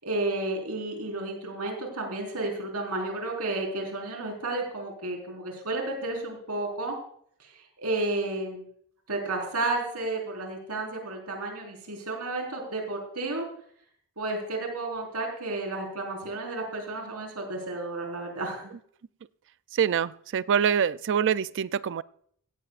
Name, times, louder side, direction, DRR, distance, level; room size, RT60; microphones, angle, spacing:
voice 1, 0.0-6.9 7.4-8.7 9.1-13.5 14.2-18.7, right 2 dB, 85° right, 1 dB, 4.5 m, -32 dB
voice 2, 19.8-22.0, right 8 dB, 55° right, 16 dB, 0.4 m, -25 dB
17.0 x 16.5 x 2.5 m, 0.63 s
head